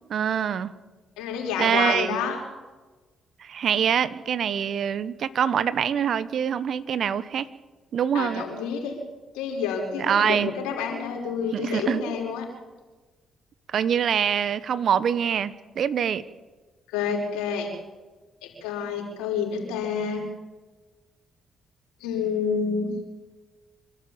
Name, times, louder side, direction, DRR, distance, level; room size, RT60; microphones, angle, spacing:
voice 1, 0.1-0.7 1.6-2.2 3.4-7.5 7.9-8.4 10.0-10.5 11.5-12.0 13.7-16.2, right 8 dB, 60° right, 16 dB, 1.2 m, -24 dB
voice 2, 1.2-2.4 8.1-9.0 9.3-12.4 16.9-17.7 18.4-20.3 22.0-22.9, left 6 dB, 80° left, 0 dB, 5.3 m, -28 dB
26.5 x 12.5 x 8.7 m, 1.3 s
hypercardioid pair, 45°, 0 cm